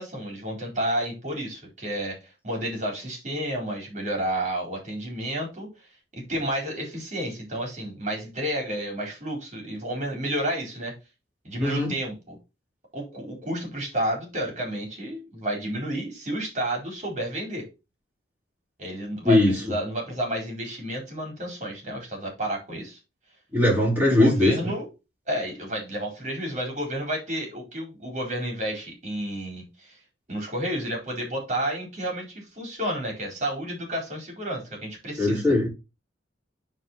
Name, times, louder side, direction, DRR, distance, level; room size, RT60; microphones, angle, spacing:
voice 1, 0.0-5.7 6.1-10.9 11.4-12.4 12.9-17.7 18.8-23.0 24.1-24.9 25.3-30.0 30.3-35.5, right 1 dB, 40° right, 4.2 m, -31 dB
voice 2, 11.6-11.9 19.2-19.6 23.5-24.5 35.2-35.7, left 1 dB, 10° right, 5.2 m, -20 dB
7.5 x 4.8 x 4.3 m
head